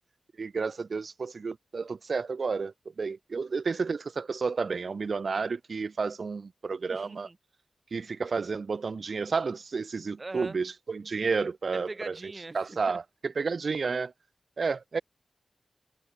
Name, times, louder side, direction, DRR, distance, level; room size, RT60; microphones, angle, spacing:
voice 1, 0.4-7.3 7.9-12.2 12.5-14.1 14.6-15.0, right 4 dB, 65° right, 0.5 m, -31 dB
voice 2, 6.9-7.4 10.2-10.6 11.7-13.0 14.7-14.8, right 2 dB, 35° right, 4.1 m, -42 dB
cardioid pair, 60°, 0 cm